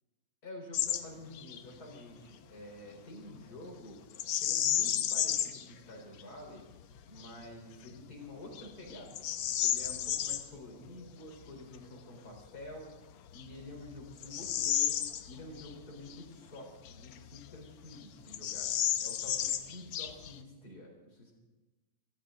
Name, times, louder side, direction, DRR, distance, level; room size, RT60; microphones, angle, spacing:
voice 1, 0.4-4.0 4.4-6.7 7.1-12.9 13.3-15.0 15.2-18.7 19.0-21.3, left 1 dB, 30° left, 1 dB, 4.3 m, -48 dB
Bird vocalization bird call bird song, 0.7-1.0 1.3-1.6 4.1-5.6 6.2-6.3 6.9-7.3 7.9-8.0 8.5-10.4 12.5-12.6 13.3-15.7 16.1-16.2 16.9-17.7 17.9-18.0 18.3-20.4, left 11 dB, 85° left, 1.2 m, -32 dB
25.5 x 13.5 x 3.8 m, 1.2 s
omnidirectional pair, 3.5 m